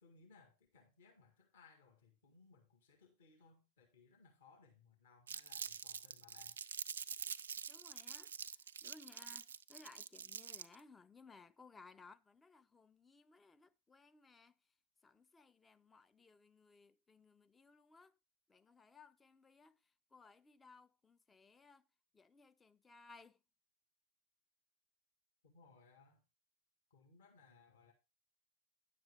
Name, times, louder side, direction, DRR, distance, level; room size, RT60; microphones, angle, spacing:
voice 1, 0.0-6.6 11.1-11.3 25.4-26.2 26.9-27.9, left 4 dB, 60° left, 1.9 m, -66 dB
Crumpling crinkling, 5.3-10.8, right 7 dB, 70° right, 0.4 m, -46 dB
voice 2, 7.7-8.3 8.8-14.6 15.0-18.2 18.5-19.8 20.1-21.8 22.1-23.4, left 4 dB, 15° left, 0.5 m, -62 dB
10.0 x 7.5 x 3.5 m
figure-of-eight pair, 90°, 0 cm